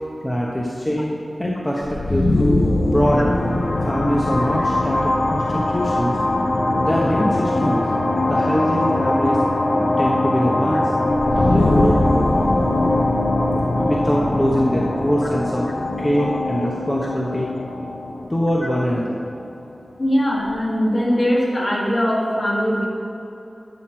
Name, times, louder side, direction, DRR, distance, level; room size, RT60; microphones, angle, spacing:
voice 1, 0.2-2.3 2.9-3.3 3.9-6.2 6.8-7.8 8.3-9.4 10.0-10.9 11.3-12.0 13.8-15.7 16.0-17.5 18.3-19.3, equal, 20° left, -4 dB, 0.9 m, -23 dB
sound 1, 1.8-19.5, left 2 dB, 70° left, 0.8 m, -21 dB
voice 2, 20.0-22.9, equal, 45° left, -3 dB, 1.9 m, -21 dB
12.0 x 5.9 x 4.5 m, 2.8 s
wide cardioid pair, 90°, 0 cm